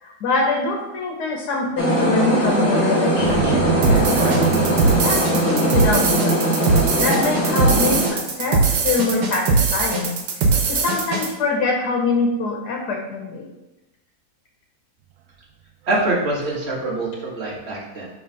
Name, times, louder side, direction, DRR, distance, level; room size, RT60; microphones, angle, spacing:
voice 1, 0.0-4.4 5.0-6.4 7.0-10.2 10.7-13.5, left 3 dB, 80° left, 0 dB, 1.5 m, -24 dB
sound 1, 1.8-8.1, equal, 10° left, 1.0 m, -20 dB
sound 2, 3.2-8.6 15.9-16.1 16.4-16.6, right 8 dB, 70° right, 0.9 m, -28 dB
sound 3, 3.8-11.3, right 4 dB, 85° right, 1.5 m, -20 dB
voice 2, 15.9-18.1, right 2 dB, 40° right, -4 dB, 1.7 m, -24 dB
5.6 x 3.3 x 5.5 m, 0.99 s
omnidirectional pair, 1.7 m